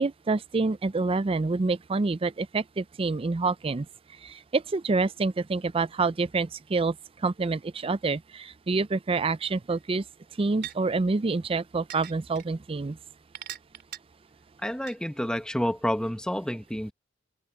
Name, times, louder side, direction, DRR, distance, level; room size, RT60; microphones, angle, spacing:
voice 1, 0.0-3.9 4.2-7.0 7.2-10.0 10.4-13.0, right 3 dB, 25° right, 0.4 m, -27 dB
sound 1, 9.7-9.8 10.6-10.7 11.9-12.4 13.3-14.0 14.9-15.0, right 11 dB, 55° right, 2.9 m, -39 dB
voice 2, 14.6-16.9, equal, 5° left, 1.2 m, -29 dB
head